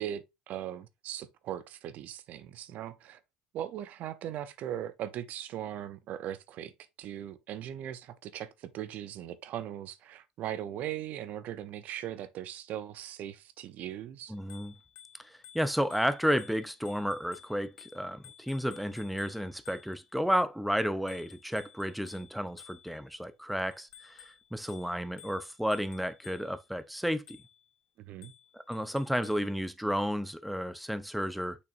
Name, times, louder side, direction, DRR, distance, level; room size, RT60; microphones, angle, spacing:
voice 1, 0.0-3.2 3.5-6.7 7.0-14.3 28.0-28.3, right 11 dB, 60° right, 0.7 m, -39 dB
voice 2, 14.3-14.8 15.2-27.4 28.5-31.6, equal, ahead, 0.6 m, -32 dB
Bicycle bell, 14.4-20.2 21.1-23.2 23.7-26.7 27.3-27.7 28.2-29.6, left 11 dB, 70° left, 0.9 m, -55 dB
6.5 x 5.7 x 2.6 m
hypercardioid pair, 75°, 3 cm